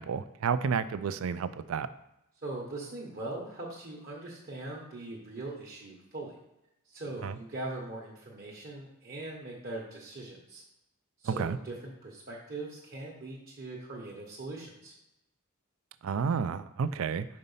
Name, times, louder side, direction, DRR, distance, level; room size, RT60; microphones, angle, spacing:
voice 1, 0.0-1.9 7.2-7.4 11.2-11.6 16.0-17.3, right 6 dB, 70° right, 14 dB, 0.4 m, -31 dB
voice 2, 2.4-6.4 6.9-10.6 11.2-14.9, right 2 dB, 45° right, -3 dB, 1.0 m, -41 dB
5.3 x 4.1 x 5.4 m, 0.88 s
head